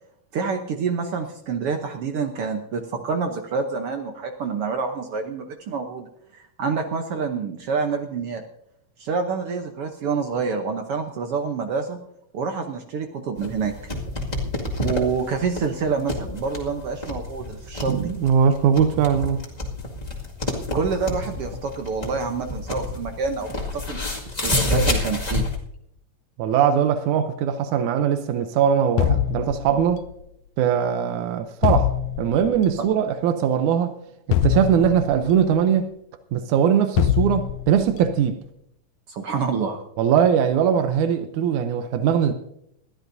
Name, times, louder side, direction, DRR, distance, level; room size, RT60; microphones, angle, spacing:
voice 1, 0.3-8.4 9.0-12.0 12.3-13.7 14.8-18.1 20.7-24.0 24.4-25.4 39.1-39.8, right 5 dB, 65° right, 1.6 m, -27 dB
sound 1, 13.4-25.6, left 2 dB, 15° left, 1.6 m, -29 dB
voice 2, 17.9-19.4 26.4-30.0 30.6-31.9 32.2-33.9 34.3-35.9 36.3-38.4 40.0-42.3, right 8 dB, 90° right, 2.2 m, -20 dB
sound 2, 29.0-30.1 31.6-32.6 34.3-35.4 37.0-37.9, left 11 dB, 85° left, 2.0 m, -23 dB
21.0 x 13.0 x 2.7 m
omnidirectional pair, 3.4 m